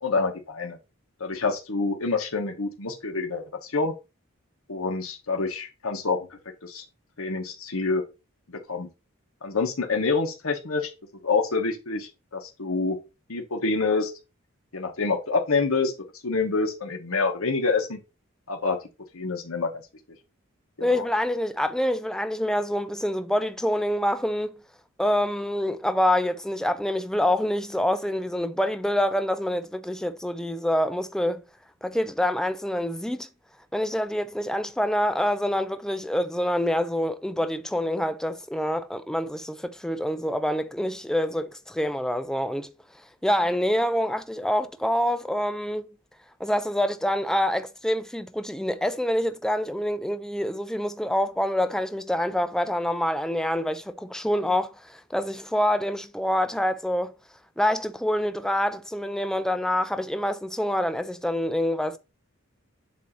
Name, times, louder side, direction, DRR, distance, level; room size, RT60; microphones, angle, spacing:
voice 1, 0.0-0.8 1.2-3.9 4.7-6.8 7.2-8.0 8.7-8.9 9.4-10.9 11.2-13.0 13.3-14.1 14.7-15.9 16.2-18.0 18.5-18.8 19.1-19.7 20.8-21.0, left 4 dB, 80° left, 1.3 m, -27 dB
voice 2, 20.8-24.6 25.0-31.4 31.8-33.3 33.7-42.7 43.2-45.9 46.4-57.1 57.6-62.0, left 1 dB, 5° left, 0.4 m, -26 dB
7.5 x 2.8 x 5.6 m
head